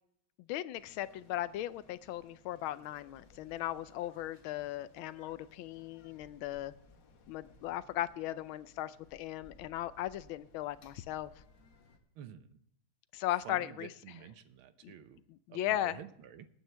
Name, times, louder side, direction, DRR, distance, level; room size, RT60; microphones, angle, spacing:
voice 1, 0.5-6.7 7.3-11.3 13.1-13.9 14.8-14.9 15.3-16.0, left 13 dB, 80° left, 15 dB, 1.4 m, -37 dB
sound 1, 0.7-12.0, left 3 dB, 60° left, 2.0 m, -61 dB
voice 2, 12.2-12.6 13.4-15.2 15.5-16.5, right 9 dB, 80° right, 11 dB, 1.7 m, -50 dB
21.0 x 9.3 x 3.4 m, 0.73 s
omnidirectional pair, 2.3 m